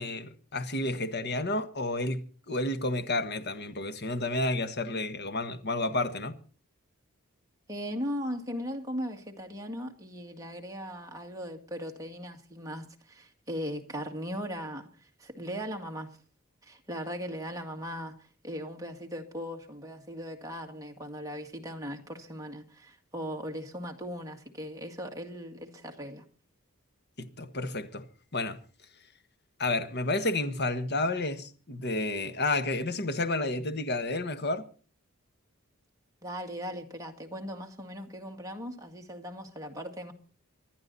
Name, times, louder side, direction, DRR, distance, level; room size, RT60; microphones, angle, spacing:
voice 1, 0.0-6.4 27.2-28.1 28.3-28.6 29.6-34.6, left 2 dB, 50° left, 1.5 m, -31 dB
voice 2, 7.7-16.2 16.6-26.2 36.2-40.1, equal, 15° right, 2.1 m, -38 dB
26.0 x 11.0 x 4.1 m
head